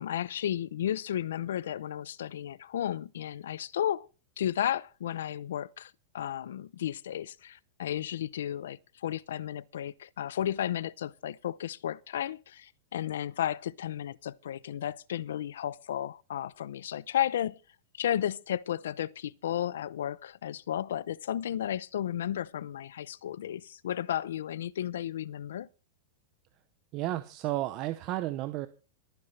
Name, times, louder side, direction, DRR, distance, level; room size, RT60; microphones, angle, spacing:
voice 1, 0.0-4.1 4.4-17.6 17.9-25.7, left 11 dB, 90° left, 0.6 m, -33 dB
voice 2, 26.9-28.7, right 15 dB, 30° right, 0.7 m, -32 dB
25.5 x 9.8 x 3.3 m
supercardioid pair, 170°, 0 cm